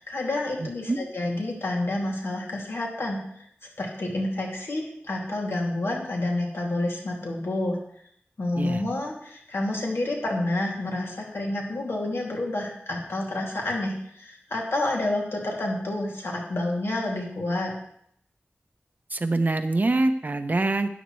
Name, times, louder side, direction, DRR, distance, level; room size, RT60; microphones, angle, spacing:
voice 1, 0.0-3.2 3.8-7.8 8.4-17.7, left 2 dB, 70° left, -1 dB, 2.6 m, -29 dB
voice 2, 0.6-1.0 8.6-8.8 19.1-20.9, right 2 dB, 40° right, 7 dB, 0.9 m, -25 dB
12.5 x 10.0 x 3.2 m, 0.69 s
wide cardioid pair, 80°, 4 cm